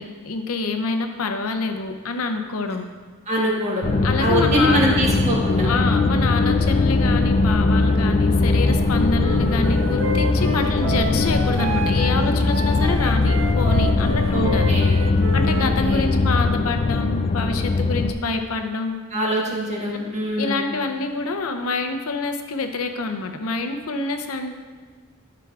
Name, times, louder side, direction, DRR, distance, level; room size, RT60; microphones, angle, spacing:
voice 1, 0.0-2.8 4.0-4.9 5.6-14.7 15.3-19.0 20.4-24.6, left 3 dB, 80° left, 6 dB, 0.6 m, -26 dB
voice 2, 3.3-3.8 4.2-5.7 14.3-14.9 15.6-16.1 19.1-20.6, equal, 30° right, -3 dB, 1.6 m, -23 dB
sound 1, 3.8-18.1, left 3 dB, 30° left, 0.3 m, -20 dB
Wind instrument woodwind instrument, 9.2-15.7, right 2 dB, 65° right, 0.8 m, -30 dB
12.5 x 5.9 x 2.4 m, 1.5 s
head